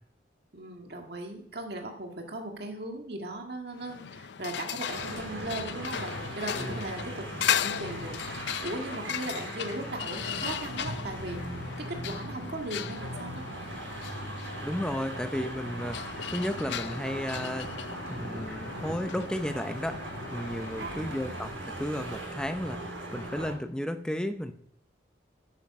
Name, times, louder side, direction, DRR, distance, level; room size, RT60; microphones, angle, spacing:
voice 1, 0.5-7.3 7.6-11.4 11.9-13.5 20.8-21.4, right 1 dB, 55° right, 2 dB, 1.8 m, -38 dB
sound 1, 3.7-21.2, left 8 dB, 65° left, 0.5 m, -37 dB
sound 2, 4.9-23.5, right 1 dB, 90° right, 5.7 m, -39 dB
voice 2, 14.6-17.7 18.1-24.5, equal, 5° left, 8 dB, 0.7 m, -34 dB
11.0 x 9.0 x 6.1 m, 0.70 s
head